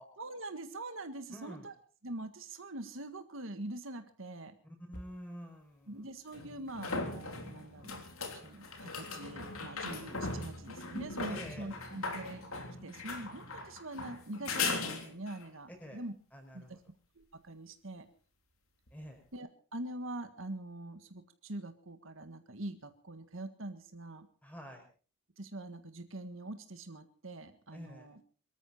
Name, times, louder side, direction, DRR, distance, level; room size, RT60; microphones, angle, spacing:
voice 1, 0.2-1.7 2.0-4.5 5.9-8.0 8.4-12.4 12.8-16.1 16.5-16.7 17.2-18.1 19.3-24.3 25.4-28.2, right 1 dB, 65° right, 9 dB, 1.7 m, -44 dB
voice 2, 1.3-1.7 4.6-6.1 11.3-11.7 15.7-16.0 16.3-16.8 18.9-19.2 24.4-24.8 27.7-28.1, equal, 5° left, 3 dB, 5.7 m, -48 dB
sound 1, 4.9-5.0 6.3-15.5 18.9-19.0, left 3 dB, 80° left, 3.3 m, -39 dB
24.0 x 13.5 x 4.3 m, 0.39 s
head